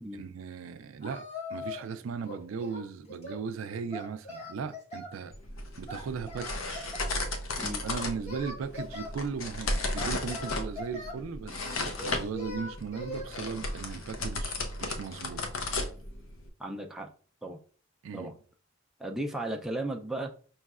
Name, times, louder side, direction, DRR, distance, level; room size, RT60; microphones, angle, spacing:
voice 1, 0.1-5.3 5.8-7.0 7.8-15.7 18.0-18.4, right 5 dB, 75° right, 0.4 m, -37 dB
Singing, 1.0-1.9 2.2-3.4 3.9-5.2 5.9-7.2 7.9-9.1 9.9-11.2 12.0-13.3, left 2 dB, 35° left, 1.4 m, -41 dB
sound 1, 5.3-16.5, left 2 dB, 85° left, 0.7 m, -35 dB
voice 2, 16.6-17.1 17.4-17.6 18.1-18.3 19.0-20.3, right 1 dB, ahead, 0.4 m, -35 dB
5.4 x 3.1 x 2.4 m
head